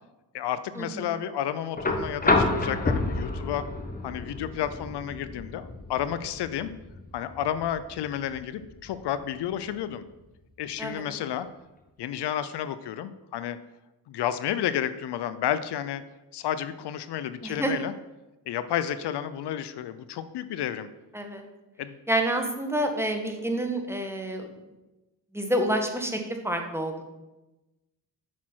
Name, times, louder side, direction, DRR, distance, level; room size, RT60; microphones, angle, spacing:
voice 1, 0.3-3.6 4.0-6.7 7.1-10.0 10.6-11.5 12.0-13.6 14.1-16.0 16.3-17.9 18.5-20.9 21.8-22.0, left 10 dB, 80° left, 13 dB, 0.6 m, -31 dB
sound 1, 1.8-9.8 11.2-11.3, left 2 dB, 20° left, 1.1 m, -30 dB
voice 2, 21.1-21.4 22.1-24.5 25.3-27.1, right 1 dB, 5° right, 4 dB, 1.3 m, -28 dB
8.5 x 6.1 x 4.4 m, 1.0 s
cardioid pair, 70°, 40 cm